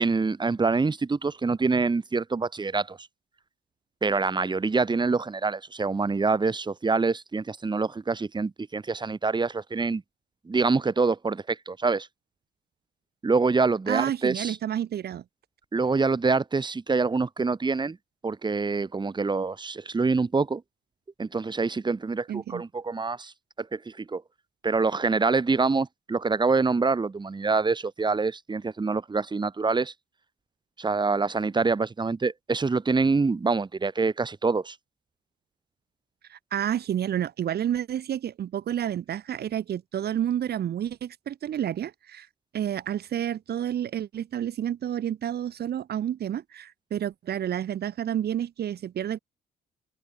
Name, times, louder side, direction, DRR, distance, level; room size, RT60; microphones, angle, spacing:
voice 1, 0.0-3.0 4.0-10.0 10.5-12.1 13.2-14.6 15.7-18.0 18.2-20.6 21.2-23.3 23.6-24.2 24.6-29.9 30.8-34.8, right 4 dB, 25° right, 2.5 m, -25 dB
voice 2, 13.9-15.2 22.3-22.6 36.3-42.3 42.5-49.2, right 10 dB, 60° right, 2.1 m, -30 dB
open air
cardioid pair, 90°, 19 cm